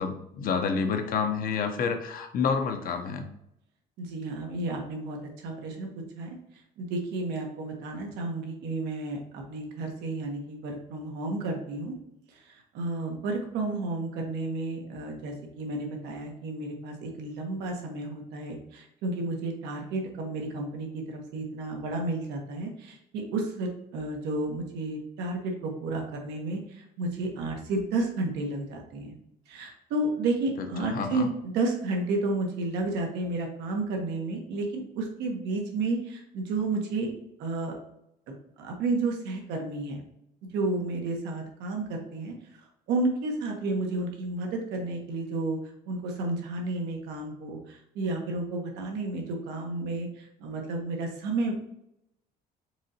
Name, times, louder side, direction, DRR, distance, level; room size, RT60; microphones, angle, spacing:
voice 1, 0.0-3.3 30.8-31.3, left 5 dB, 55° left, 6 dB, 0.8 m, -28 dB
voice 2, 4.0-5.9 6.2-6.4 6.8-11.9 12.3-29.1 29.5-37.1 37.4-37.8 38.3-40.0 40.4-42.3 42.9-45.6 45.9-51.6, right 2 dB, 90° right, 2 dB, 1.1 m, -32 dB
4.8 x 3.8 x 2.8 m, 0.79 s
cardioid pair, 110°, 17 cm